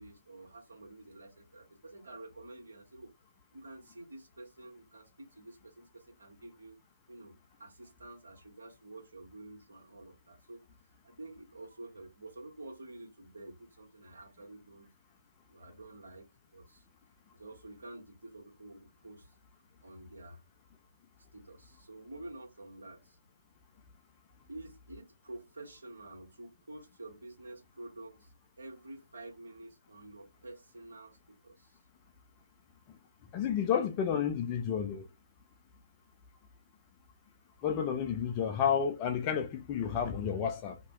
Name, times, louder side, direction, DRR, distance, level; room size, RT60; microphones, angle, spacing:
voice 1, 0.0-3.1 3.5-6.8 7.1-10.6 11.0-14.9 15.5-16.8 17.3-19.3 19.8-20.4 21.3-23.2 24.5-31.8, right 2 dB, 65° right, 1.5 m, -49 dB
voice 2, 33.3-35.1 37.6-40.8, left 8 dB, 20° left, 0.4 m, -31 dB
2.8 x 2.2 x 3.0 m
figure-of-eight pair, 145°, 0 cm